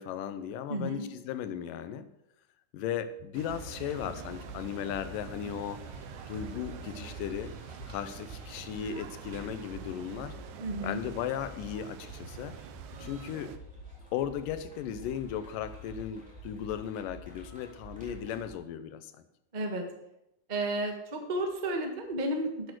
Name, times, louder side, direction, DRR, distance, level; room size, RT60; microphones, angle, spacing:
voice 1, 0.0-2.1 2.7-5.8 6.3-7.5 7.9-10.4 10.8-12.6 13.0-13.5 14.1-19.3, left 9 dB, 85° left, 11 dB, 2.5 m, -36 dB
voice 2, 0.7-1.1 10.6-11.0 19.5-19.8 20.5-22.7, right 1 dB, 45° right, 2 dB, 0.5 m, -32 dB
sound 1, 3.3-13.6, right 8 dB, 75° right, 2.0 m, -46 dB
sound 2, 3.5-18.5, equal, ahead, 3.2 m, -48 dB
11.0 x 8.6 x 6.3 m, 0.84 s
omnidirectional pair, 3.9 m